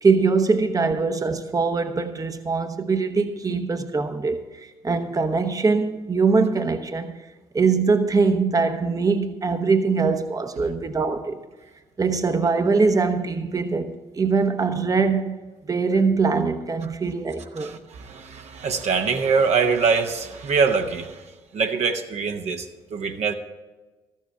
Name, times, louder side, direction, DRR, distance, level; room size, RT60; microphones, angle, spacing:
voice 1, 0.0-7.1 7.5-11.4 12.0-15.4 15.7-17.7, right 4 dB, 25° right, 0.9 m, -22 dB
voice 2, 17.6-21.3 21.5-23.3, right 5 dB, 55° right, 0.9 m, -24 dB
13.5 x 7.4 x 5.8 m
hypercardioid pair, 45°, 14 cm